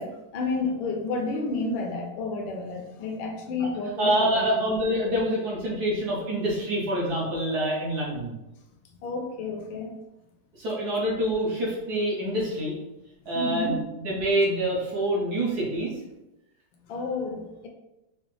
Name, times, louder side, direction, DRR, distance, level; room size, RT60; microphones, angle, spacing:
voice 1, 0.0-4.6 9.0-10.0 13.3-13.8 16.9-17.7, left 3 dB, 75° left, 2 dB, 1.3 m, -31 dB
voice 2, 4.0-8.3 10.6-12.7 13.3-13.7 14.0-15.9, right 1 dB, 60° right, -5 dB, 1.3 m, -26 dB
4.9 x 2.0 x 3.1 m, 0.96 s
omnidirectional pair, 2.2 m